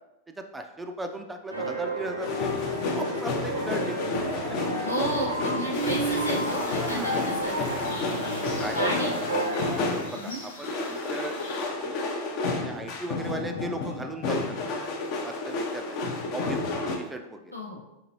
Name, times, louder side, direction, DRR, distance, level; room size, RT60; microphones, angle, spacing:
voice 1, 0.4-2.5 2.9-4.0 4.5-4.7 6.8-7.2 8.2-9.0 9.9-11.3 11.8-12.0 12.6-14.6 15.2-16.0 16.3-17.5, right 1 dB, 10° right, 5 dB, 0.4 m, -37 dB
sound 1, 1.5-9.8, right 1 dB, 80° right, 0.8 m, -32 dB
sound 2, 2.2-10.3 10.6-17.0, left 2 dB, 45° left, 0.6 m, -31 dB
voice 2, 4.8-7.6 8.7-9.1 10.1-10.4 17.5-17.8, equal, 90° left, -3 dB, 0.9 m, -32 dB
sound 3, 5.7-11.7, right 3 dB, 70° left, 1.1 m, -37 dB
4.5 x 3.8 x 2.9 m, 0.96 s
figure-of-eight pair, 90°, 0 cm